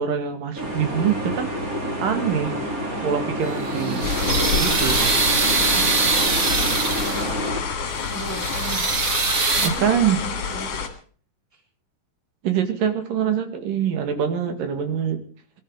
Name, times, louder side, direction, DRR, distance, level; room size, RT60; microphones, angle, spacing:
voice 1, 0.0-1.5 2.0-2.5 3.0-4.1 4.5-5.1 9.6-10.2 12.4-15.2, right 8 dB, 85° right, 7 dB, 3.7 m, -24 dB
sound 1, 0.5-7.6, equal, 25° right, 4.4 m, -28 dB
sound 2, 3.5-7.4 7.9-9.7, right 4 dB, 40° right, 1.2 m, -23 dB
sound 3, 4.0-10.9, left 6 dB, 50° left, 2.9 m, -28 dB
voice 2, 5.4-5.9 6.4-7.7 7.9-8.8 9.5-10.8, right 3 dB, 5° left, 1 dB, 3.6 m, -37 dB
21.5 x 12.5 x 4.8 m, 0.43 s
omnidirectional pair, 3.8 m